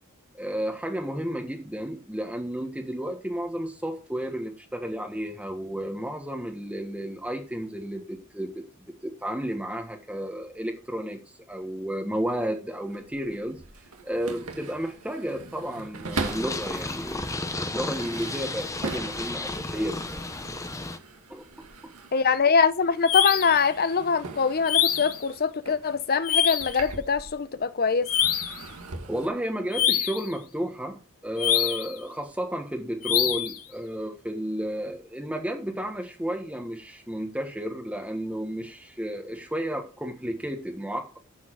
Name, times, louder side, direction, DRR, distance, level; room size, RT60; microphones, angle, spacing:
voice 1, 0.3-8.6 9.0-11.2 11.5-13.6 14.0-20.2 21.3-21.4 29.1-41.2, equal, 5° right, 1.4 m, -32 dB
sound 1, 12.8-16.7 17.3-22.5 22.8-27.6 28.0-29.3, right 3 dB, 90° right, 2.1 m, -40 dB
Purr, 16.1-21.0, left 2 dB, 15° left, 0.9 m, -33 dB
voice 2, 22.1-28.1, left 5 dB, 45° left, 0.7 m, -23 dB
sound 2, 23.0-23.6 24.6-25.2 26.2-26.8 28.1-28.6 29.7-30.3 31.4-31.9 33.0-33.6, left 10 dB, 80° left, 1.4 m, -25 dB
9.8 x 7.4 x 4.7 m
head